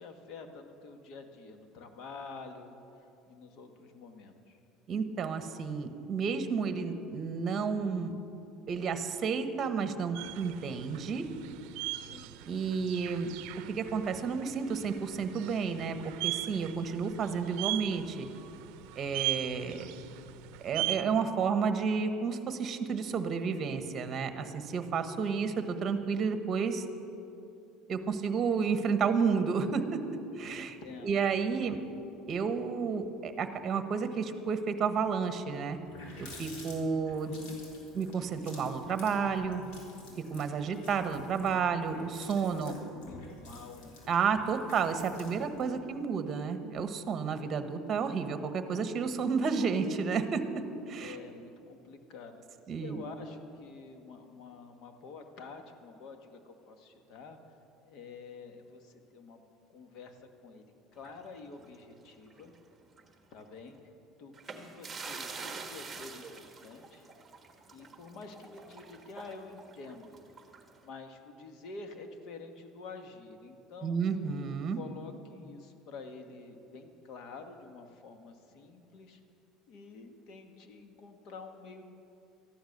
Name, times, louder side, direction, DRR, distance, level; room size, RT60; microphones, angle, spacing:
voice 1, 0.0-4.6 11.9-12.4 30.5-31.2 31.4-31.9 42.5-44.0 51.0-57.4 57.8-59.4 59.7-62.5 63.3-63.8 64.2-67.1 67.7-70.2 70.8-74.0 74.7-79.2 79.7-81.9, left 4 dB, 60° left, 6 dB, 1.5 m, -48 dB
voice 2, 4.9-8.1 8.7-11.3 12.4-13.3 13.6-16.0 16.2-18.3 19.0-19.9 20.6-26.8 27.9-30.0 30.4-31.8 32.3-35.8 36.2-37.6 37.9-39.6 40.2-42.7 44.1-50.6 50.9-51.2 52.7-53.0 73.8-74.8, right 5 dB, 35° right, 9 dB, 1.1 m, -31 dB
sound 1, 10.1-21.0, right 17 dB, 70° right, 0.5 m, -39 dB
Water tap faucet, 35.7-45.8, left 1 dB, 80° left, 3.6 m, -51 dB
sound 2, 61.0-62.6 62.9-63.1 64.3-70.8, right 4 dB, 15° right, 1.4 m, -46 dB
14.0 x 11.0 x 6.6 m, 2.7 s
cardioid pair, 130°, 0 cm